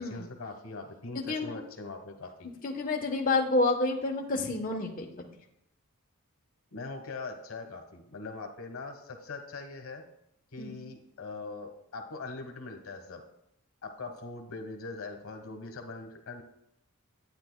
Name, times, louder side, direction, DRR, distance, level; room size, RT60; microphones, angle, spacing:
voice 1, 0.0-2.5 6.7-10.0 10.5-13.2 13.8-16.4, left 3 dB, 70° left, 4 dB, 1.2 m, -41 dB
voice 2, 1.1-1.5 2.6-5.3 10.6-10.8, left 2 dB, 40° left, 0 dB, 1.0 m, -29 dB
10.5 x 9.4 x 2.2 m, 0.77 s
head